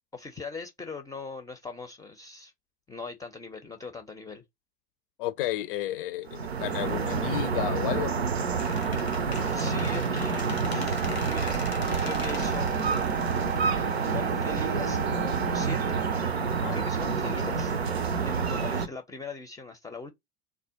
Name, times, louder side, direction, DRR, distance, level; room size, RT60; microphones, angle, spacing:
voice 1, 0.1-2.5 2.9-4.4 9.5-11.0 11.2-13.1 14.1-16.0 16.7-17.7 18.2-20.1, left 3 dB, 10° left, 0.5 m, -40 dB
voice 2, 5.2-8.1 16.6-16.8, left 13 dB, 60° left, 0.5 m, -32 dB
sound 1, 6.3-18.9, right 5 dB, 85° right, 0.5 m, -28 dB
Squeak, 8.6-14.4, left 5 dB, 85° left, 0.8 m, -42 dB
Wind instrument woodwind instrument, 10.3-16.2, right 9 dB, 40° right, 0.5 m, -38 dB
3.4 x 2.1 x 2.8 m
figure-of-eight pair, 75°, 31 cm